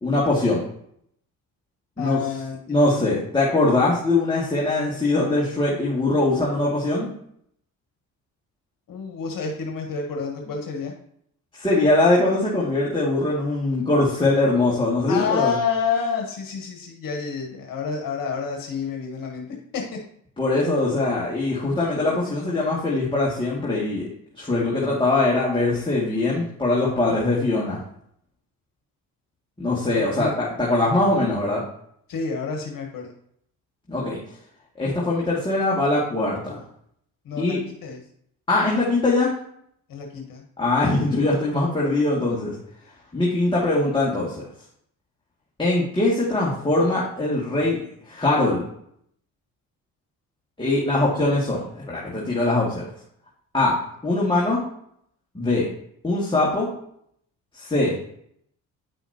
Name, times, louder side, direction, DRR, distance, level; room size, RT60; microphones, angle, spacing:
voice 1, 0.0-0.6 2.0-2.2 2.7-7.1 11.5-15.5 20.4-24.1 24.3-27.8 29.6-31.6 33.9-34.2 34.8-36.6 37.4-37.6 38.5-39.3 40.6-42.5 43.1-44.4 45.6-47.8 48.1-48.7 50.6-52.9 53.5-54.6 55.3-55.7 56.0-56.7 57.5-58.0, left 2 dB, 15° left, -6 dB, 2.3 m, -22 dB
voice 2, 2.0-2.8 8.9-10.9 15.1-19.5 19.7-19.8 29.9-30.4 32.1-33.1 37.2-38.0 39.9-40.4 50.9-51.1, left 5 dB, 60° left, 1 dB, 1.5 m, -29 dB
9.5 x 5.6 x 2.9 m, 0.69 s
hypercardioid pair, 55°, 39 cm